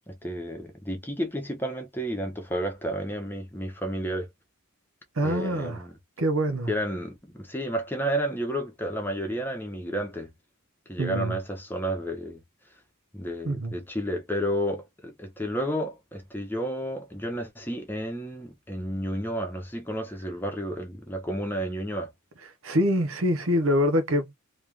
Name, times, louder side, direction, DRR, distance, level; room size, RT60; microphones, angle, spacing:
voice 1, 0.1-4.3 5.2-6.0 6.7-10.3 10.9-12.4 13.1-22.1, equal, 10° left, 1.1 m, -31 dB
voice 2, 5.2-5.8 6.2-6.7 11.0-11.4 13.4-13.7 22.6-24.3, equal, 65° right, 0.9 m, -25 dB
3.1 x 2.9 x 3.5 m
head